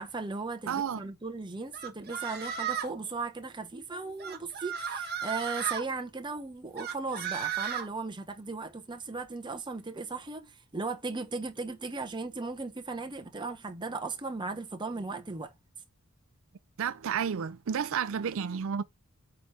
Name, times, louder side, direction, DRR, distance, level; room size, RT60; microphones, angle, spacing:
voice 1, 0.0-15.5, right 3 dB, 20° right, 0.9 m, -37 dB
voice 2, 0.7-1.1 16.8-18.8, right 7 dB, 70° right, 0.4 m, -31 dB
sound 1, 1.7-3.0 4.2-5.8 6.8-7.9, right 8 dB, 50° right, 1.2 m, -34 dB
8.7 x 3.2 x 4.8 m
head